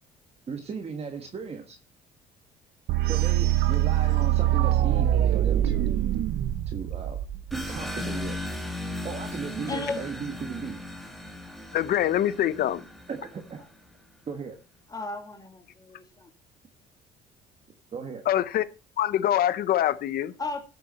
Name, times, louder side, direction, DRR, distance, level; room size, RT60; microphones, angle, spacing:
voice 1, 0.5-1.8 3.1-5.9 6.7-7.2 7.5-8.4 9.0-10.8 13.1-13.6 14.3-14.6 17.9-18.2, right 5 dB, 35° right, 1.6 m, -36 dB
sound 1, 2.9-7.8, right 12 dB, 75° right, 0.8 m, -24 dB
sound 2, 7.5-13.8, left 1 dB, ahead, 2.0 m, -37 dB
voice 2, 9.7-10.1 13.6-13.7 14.9-16.3 20.4-20.6, left 3 dB, 20° left, 2.2 m, -35 dB
voice 3, 11.7-12.8 18.3-18.6 19.0-20.3, left 11 dB, 65° left, 0.9 m, -24 dB
14.0 x 6.9 x 4.3 m
cardioid pair, 110°, 17 cm